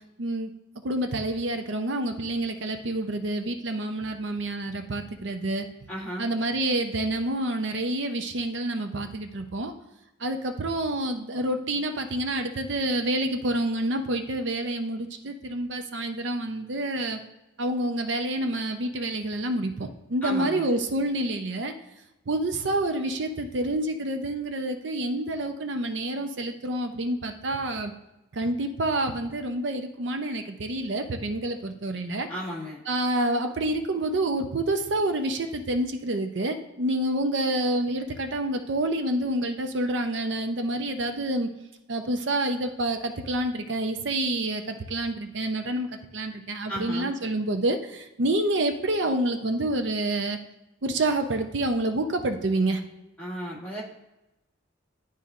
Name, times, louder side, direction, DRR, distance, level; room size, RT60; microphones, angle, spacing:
voice 1, 0.2-0.5 0.8-5.7 6.2-9.7 10.2-17.2 17.6-21.7 22.3-27.9 28.3-32.3 32.9-41.5 41.9-45.9 46.1-50.4 50.8-52.8, right 1 dB, 65° right, 6 dB, 0.6 m, -28 dB
voice 2, 5.9-6.3 20.2-20.7 32.3-32.8 46.7-47.1 53.2-53.8, equal, 10° left, -7 dB, 2.1 m, -34 dB
11.0 x 4.0 x 2.5 m, 0.96 s
head